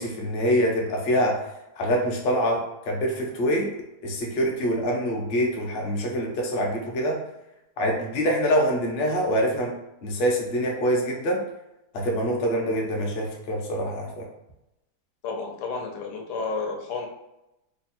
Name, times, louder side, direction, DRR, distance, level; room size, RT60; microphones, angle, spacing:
voice 1, 0.0-1.4 1.8-3.7 4.0-7.2 7.8-9.7 10.0-11.4 11.9-14.3, equal, 50° left, -1 dB, 0.7 m, -25 dB
voice 2, 15.2-17.1, left 4 dB, 80° left, 1 dB, 1.3 m, -31 dB
3.3 x 2.2 x 4.2 m, 0.91 s
omnidirectional pair, 1.8 m